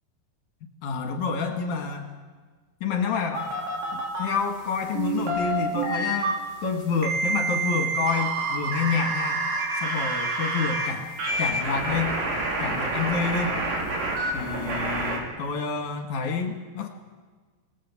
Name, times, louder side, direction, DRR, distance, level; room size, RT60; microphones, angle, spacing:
voice 1, 0.8-2.1 2.8-3.5 3.9-6.4 6.6-9.4 9.8-11.1 11.4-12.2 12.6-13.6 14.3-16.9, left 5 dB, 60° left, 3 dB, 2.6 m, -28 dB
sound 1, 3.3-4.2 4.9-6.3 7.0-10.9 11.2-15.2, right 2 dB, 80° right, 6.1 m, -27 dB
27.5 x 19.0 x 7.2 m, 1.4 s
omnidirectional pair, 5.0 m